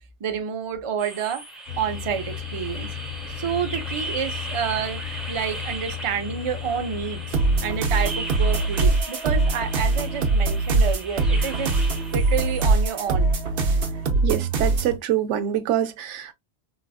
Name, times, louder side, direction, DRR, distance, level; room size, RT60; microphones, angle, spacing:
voice 1, 0.2-1.4 1.8-2.9 3.4-11.7 12.1-13.3, right 7 dB, 40° right, 0.5 m, -29 dB
sound 1, 1.0-12.7, right 2 dB, ahead, 0.8 m, -37 dB
sound 2, 1.7-7.9, left 10 dB, 50° left, 1.2 m, -35 dB
sound 3, 7.3-15.0, right 3 dB, 60° right, 0.8 m, -22 dB
voice 2, 14.2-16.3, right 11 dB, 85° right, 0.9 m, -25 dB
4.1 x 2.4 x 2.3 m
omnidirectional pair, 1.2 m